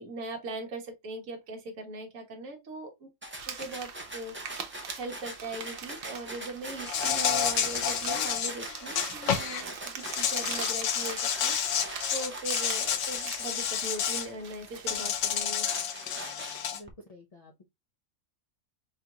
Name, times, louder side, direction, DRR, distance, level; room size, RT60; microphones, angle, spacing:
voice 1, 0.0-3.1 3.5-4.4 4.9-11.5 12.1-15.7, right 2 dB, 75° right, 1.5 m, -40 dB
sound 1, 3.2-14.9 15.3-16.9, right 1 dB, 15° right, 0.4 m, -43 dB
sound 2, 3.4-15.4, right 6 dB, 50° right, 0.9 m, -42 dB
Insect, 6.9-9.6 10.0-14.3 14.9-16.8, left 8 dB, 70° left, 1.0 m, -30 dB
voice 2, 16.7-17.6, left 1 dB, 40° left, 0.6 m, -50 dB
5.5 x 2.5 x 2.8 m
omnidirectional pair, 1.4 m